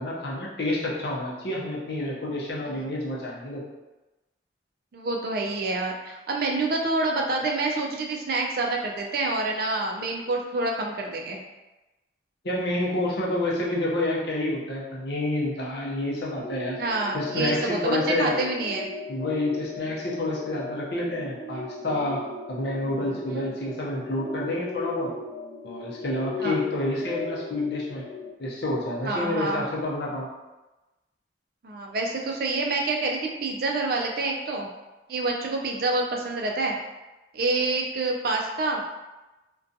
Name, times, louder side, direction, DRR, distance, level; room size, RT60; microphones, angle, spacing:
voice 1, 0.0-3.6 12.4-16.8 17.1-18.3 19.1-25.1 25.6-28.0 28.4-30.3, left 1 dB, 60° left, -4 dB, 0.6 m, -29 dB
voice 2, 4.9-11.4 16.8-18.9 26.4-26.6 29.0-29.7 31.6-34.7 35.1-36.8 37.3-38.8, right 2 dB, 55° right, 0 dB, 0.3 m, -27 dB
sound 1, 16.4-28.3, left 3 dB, 10° left, 0.4 m, -37 dB
2.5 x 2.2 x 2.6 m, 1.1 s
head